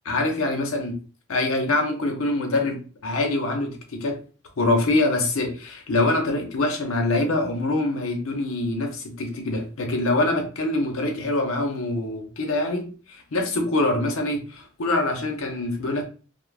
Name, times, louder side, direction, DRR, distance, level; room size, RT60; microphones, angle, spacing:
voice 1, 0.0-0.9 1.3-4.2 4.6-16.0, left 2 dB, 75° left, 0.7 m, -24 dB
2.4 x 2.1 x 3.2 m
head